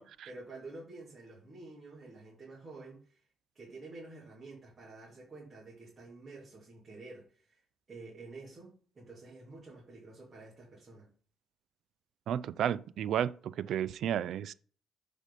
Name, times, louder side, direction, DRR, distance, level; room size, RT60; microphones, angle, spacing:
voice 1, 0.3-3.3 3.5-11.1, right 3 dB, 35° right, 3.0 m, -49 dB
voice 2, 12.3-14.5, right 10 dB, 75° right, 0.4 m, -32 dB
7.4 x 5.1 x 4.1 m
cardioid pair, 90°, 0 cm